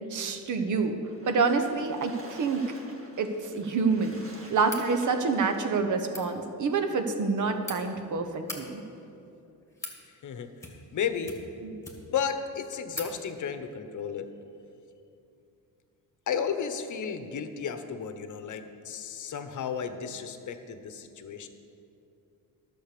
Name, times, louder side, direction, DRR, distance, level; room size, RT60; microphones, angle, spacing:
voice 1, 0.1-0.9 1.3-2.6 3.2-4.2 4.5-8.8 11.6-11.8, right 4 dB, 55° right, 7 dB, 1.0 m, -27 dB
Splash splatter, 1.0-5.9, right 2 dB, 35° right, 1.8 m, -49 dB
sound 1, 4.6-4.9 6.0-6.3 7.2-7.8 8.3-8.6 9.4-10.0 10.6-10.9 11.2-12.2 12.5-12.6 12.9-13.1, left 2 dB, 10° left, 1.9 m, -40 dB
voice 2, 10.9-11.4 12.1-14.3 16.3-21.5, left 7 dB, 55° left, 9 dB, 0.9 m, -33 dB
11.5 x 6.7 x 6.7 m, 2.7 s
cardioid pair, 100°, 36 cm